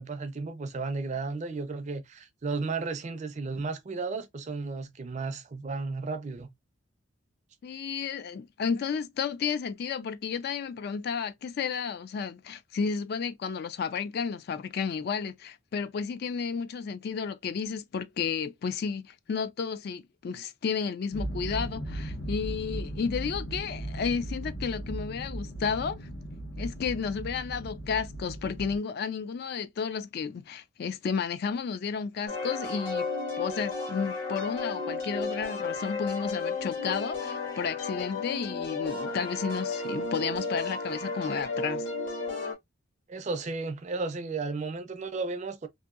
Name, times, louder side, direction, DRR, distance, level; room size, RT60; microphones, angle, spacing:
voice 1, 0.0-6.5 43.1-45.7, right 3 dB, 35° right, 0.4 m, -34 dB
voice 2, 7.6-26.1 26.6-33.1 33.4-41.8, left 6 dB, 50° left, 0.3 m, -32 dB
sound 1, 21.1-28.8, right 1 dB, 85° left, 1.4 m, -37 dB
sound 2, 32.3-42.5, left 3 dB, 70° left, 1.5 m, -33 dB
2.8 x 2.6 x 2.4 m
head